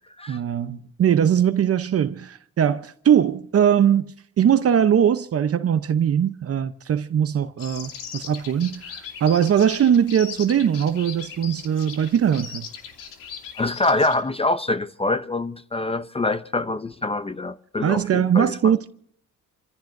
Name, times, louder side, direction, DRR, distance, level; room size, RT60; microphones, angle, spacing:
voice 1, 0.3-12.7 17.8-18.9, right 9 dB, 45° right, 0.8 m, -21 dB
sound 1, 7.6-14.1, left 7 dB, 85° left, 2.7 m, -39 dB
voice 2, 13.6-18.7, left 2 dB, 20° left, 0.6 m, -25 dB
28.0 x 15.5 x 2.6 m
cardioid pair, 115°, 32 cm